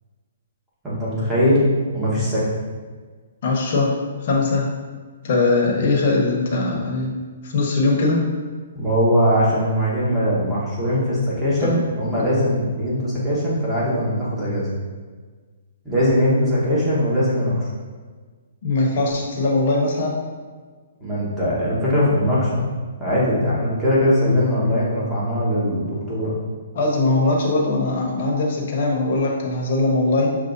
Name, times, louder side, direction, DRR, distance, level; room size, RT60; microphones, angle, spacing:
voice 1, 0.8-1.6 1.9-2.5 8.7-14.7 15.8-17.7 21.0-22.6 23.0-26.3, equal, 10° right, -9 dB, 1.2 m, -20 dB
voice 2, 3.4-3.9 4.2-4.7 5.2-7.1 7.4-8.2 11.6-11.8 12.1-12.2 18.6-20.2 26.7-30.4, left 3 dB, 45° left, -2 dB, 1.0 m, -20 dB
6.4 x 3.0 x 2.7 m, 1.5 s
hypercardioid pair, 165°, 0 cm